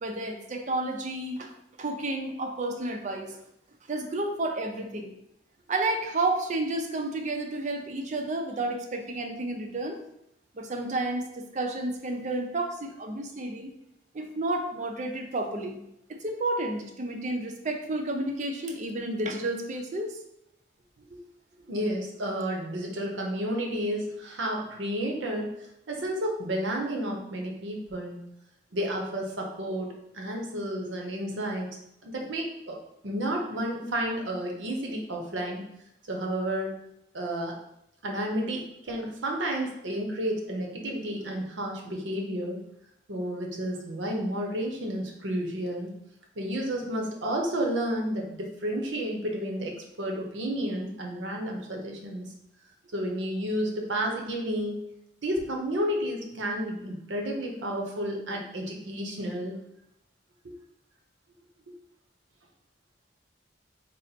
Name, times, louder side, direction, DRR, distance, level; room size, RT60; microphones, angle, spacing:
voice 1, 0.0-1.5 1.8-3.4 3.9-5.2 5.7-10.0 10.5-13.7 14.1-15.8 16.1-20.2, right 2 dB, 40° right, 4 dB, 0.4 m, -31 dB
voice 2, 21.7-25.6 25.9-28.3 28.7-31.7 32.0-32.8 33.0-35.6 36.1-36.8 37.1-37.6 38.0-42.6 43.1-45.9 46.4-52.3 52.9-54.8 55.2-59.6 60.4-60.5, right 1 dB, 85° right, 1 dB, 0.8 m, -31 dB
4.1 x 2.0 x 4.0 m, 0.80 s
head